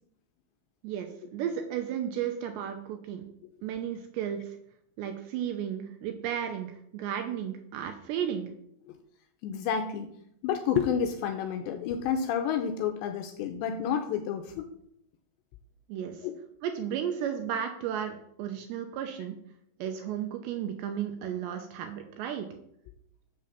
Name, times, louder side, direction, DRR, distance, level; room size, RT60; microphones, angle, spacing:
voice 1, 0.8-3.2 3.6-4.6 5.0-8.5 15.9-16.2 16.6-19.4 19.8-22.5, right 9 dB, 80° right, 5 dB, 2.7 m, -34 dB
voice 2, 9.4-10.1 10.4-14.7 16.2-16.3, left 7 dB, 80° left, 6 dB, 2.6 m, -30 dB
7.6 x 6.2 x 7.2 m, 0.72 s
omnidirectional pair, 5.6 m